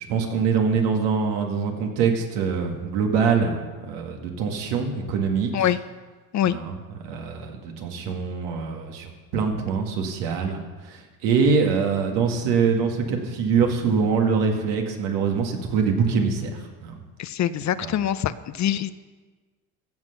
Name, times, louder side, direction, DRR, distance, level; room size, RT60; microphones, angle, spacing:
voice 1, 0.0-5.7 6.5-6.8 7.0-10.6 10.8-16.9 17.8-17.9, right 5 dB, 80° right, 3 dB, 2.1 m, -24 dB
voice 2, 17.2-18.9, left 11 dB, 45° left, 15 dB, 0.6 m, -24 dB
15.5 x 6.0 x 6.6 m, 1.4 s
supercardioid pair, 80°, 41 cm